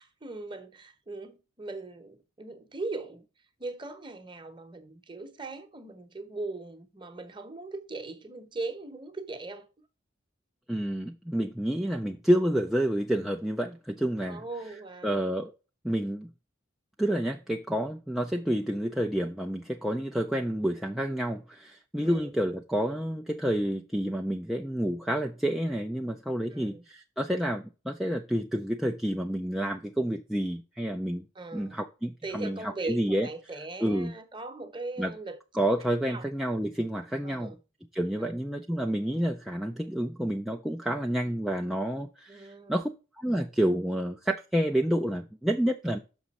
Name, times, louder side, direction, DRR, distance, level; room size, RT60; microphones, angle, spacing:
voice 1, 0.0-3.3 3.6-9.7 14.3-15.3 22.0-22.3 26.5-26.8 31.3-31.8 32.2-35.4 36.1-36.3 37.2-37.6 38.2-38.4 42.3-42.8, right 3 dB, 25° right, 0.9 m, -39 dB
voice 2, 10.7-14.4 15.0-15.5 15.8-16.3 17.0-31.2 31.5-33.3 33.8-34.1 35.0-35.1 35.5-37.5 37.9-42.9 43.2-46.0, equal, ahead, 0.3 m, -29 dB
6.2 x 6.1 x 4.1 m
head